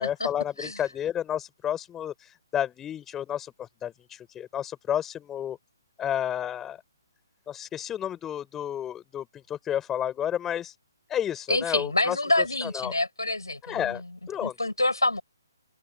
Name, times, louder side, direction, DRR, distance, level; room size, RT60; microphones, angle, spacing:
voice 1, 0.0-5.6 6.0-6.8 7.5-10.8 11.1-12.9 13.6-14.0 14.3-14.5, left 10 dB, 15° left, 5.8 m, -31 dB
voice 2, 11.5-14.0 14.4-15.2, left 2 dB, 85° left, 6.3 m, -27 dB
open air
figure-of-eight pair, 135°, 2 cm